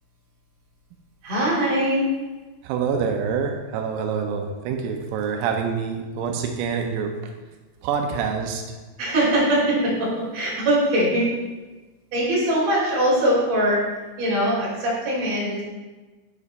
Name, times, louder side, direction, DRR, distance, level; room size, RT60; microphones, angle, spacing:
voice 1, 1.2-2.0 9.0-11.3 12.1-13.8 14.2-15.6, right 1 dB, 35° right, -6 dB, 3.7 m, -21 dB
voice 2, 2.6-7.3 7.8-8.8, right 6 dB, 90° right, 3 dB, 3.6 m, -26 dB
7.8 x 7.2 x 4.2 m, 1.2 s
omnidirectional pair, 5.9 m